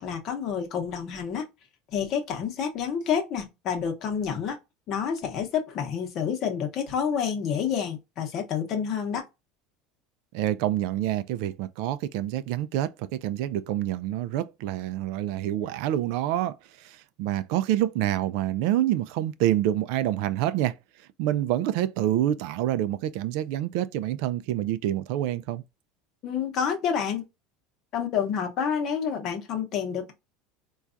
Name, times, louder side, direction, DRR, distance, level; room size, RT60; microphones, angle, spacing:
voice 1, 0.0-1.4 1.9-4.6 4.9-9.2 26.2-27.2 27.9-30.1, left 7 dB, 35° left, 0.8 m, -28 dB
voice 2, 10.3-20.8 21.2-25.6, right 12 dB, 60° right, 0.3 m, -27 dB
4.5 x 2.3 x 2.5 m
cardioid pair, 175°, 0 cm